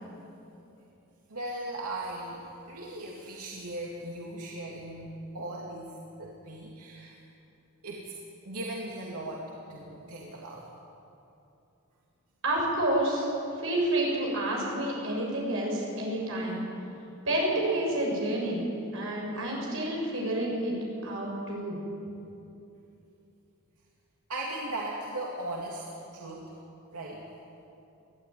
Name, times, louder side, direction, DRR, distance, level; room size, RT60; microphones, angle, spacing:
voice 1, 1.3-2.4 2.7-7.2 7.8-8.1 8.4-10.7 16.8-17.0 24.3-25.8 26.1-26.5 26.9-27.3, right 1 dB, 90° right, -4 dB, 2.9 m, -38 dB
voice 2, 12.4-13.3 13.6-16.6 17.3-18.7 18.9-20.7 21.0-21.8, right 1 dB, 60° right, -2 dB, 7.4 m, -29 dB
23.0 x 15.5 x 9.7 m, 2.8 s
head